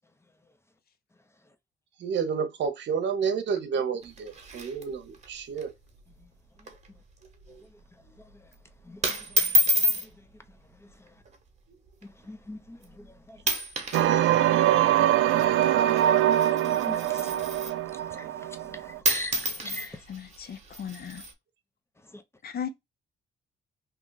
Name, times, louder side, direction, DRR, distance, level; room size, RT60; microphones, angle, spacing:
voice 1, 2.0-5.7, right 6 dB, 65° right, 0.8 m, -30 dB
sound 1, 4.0-5.3 5.6-5.7 6.0-6.2 6.6-6.9 7.3-7.5 8.3-8.5 9.0-10.1 11.1-11.4 12.0-12.1 12.8-13.1 13.4-14.1 14.3-17.9 18.7-18.8 19.0-21.3, right 1 dB, 35° right, 1.1 m, -29 dB
voice 2, 8.8-9.5 9.8-9.9 12.0-13.4 14.4-14.5 14.9-15.1 15.6-16.3 16.7-17.4 17.9-20.0 22.1-22.2, left 1 dB, 15° left, 0.5 m, -42 dB
sound 2, 13.9-19.0, right 12 dB, 85° right, 0.4 m, -23 dB
voice 3, 19.6-21.2 22.4-22.7, left 8 dB, 50° left, 0.6 m, -38 dB
2.9 x 2.3 x 3.8 m
cardioid pair, 90°, 20 cm